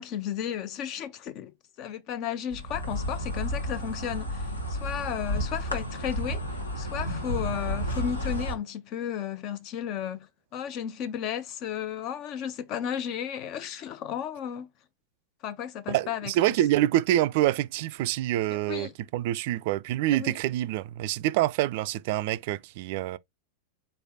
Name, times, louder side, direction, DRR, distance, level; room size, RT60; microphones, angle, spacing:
voice 1, 0.0-6.4 6.8-14.7 15.4-16.5 18.5-18.9 20.1-20.3, left 9 dB, 40° left, 0.6 m, -34 dB
Insect, 2.5-8.5, equal, 80° left, 1.1 m, -32 dB
voice 2, 15.9-23.2, right 14 dB, 50° right, 0.3 m, -26 dB
4.1 x 3.2 x 2.7 m
figure-of-eight pair, 90°, 0 cm